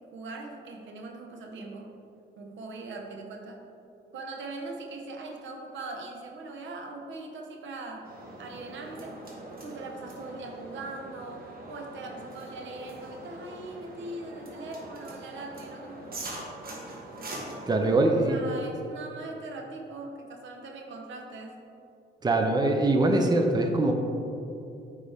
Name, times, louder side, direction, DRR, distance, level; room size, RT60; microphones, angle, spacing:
voice 1, 0.1-1.9 2.4-3.6 4.1-8.1 8.4-9.1 9.6-16.0 17.8-21.6, right 2 dB, 70° right, 2 dB, 1.0 m, -41 dB
sound 1, 8.0-18.3, right 1 dB, 50° right, 1.7 m, -43 dB
voice 2, 17.7-18.4 22.2-23.9, right 2 dB, 20° right, 3 dB, 0.7 m, -23 dB
8.9 x 5.1 x 3.5 m, 2.7 s
cardioid pair, 90°, 20 cm